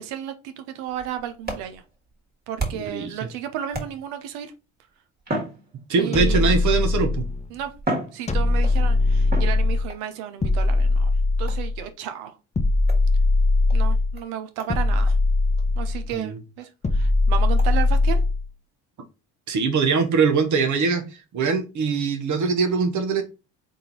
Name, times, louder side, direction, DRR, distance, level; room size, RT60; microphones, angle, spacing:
voice 1, 0.0-1.8 2.5-4.5 5.9-6.6 7.5-7.7 8.1-11.1 11.4-12.4 13.7-15.2 15.8-18.2, right 10 dB, 80° right, 9 dB, 0.8 m, -33 dB
sound 1, 0.9-3.1 3.7-4.3 5.2-6.3 7.2-7.3 7.7-8.8 9.3-10.0 11.5-11.8 12.9-13.1 13.7-13.8 14.2-14.3 14.6-14.8 15.1-15.2 15.6-15.7 16.1-16.2 16.6-16.7 17.6-17.7, right 1 dB, 25° right, 1.7 m, -33 dB
voice 2, 2.7-3.1 5.9-7.2 16.1-16.4 19.5-21.1 21.3-23.2, right 5 dB, 50° right, 6 dB, 1.0 m, -22 dB
sound 2, 6.1-7.4 8.3-9.9 10.4-11.8 12.5-14.2 14.7-16.1 16.8-18.4, left 2 dB, 20° left, 0.7 m, -20 dB
3.8 x 2.6 x 4.2 m, 0.29 s
hypercardioid pair, 65°, 38 cm